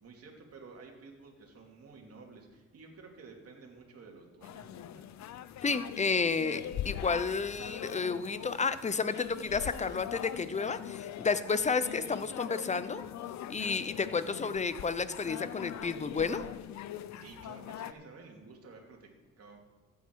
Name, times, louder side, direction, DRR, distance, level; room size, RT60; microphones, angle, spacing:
voice 1, 0.0-5.1 17.2-19.6, right 4 dB, 50° right, 1 dB, 2.7 m, -52 dB
sound 1, 4.4-17.9, left 11 dB, 65° left, 0.6 m, -42 dB
voice 2, 5.6-13.0 13.5-16.4, left 5 dB, 25° left, 13 dB, 0.7 m, -31 dB
14.5 x 8.3 x 4.7 m, 1.2 s
cardioid pair, 90°, 30 cm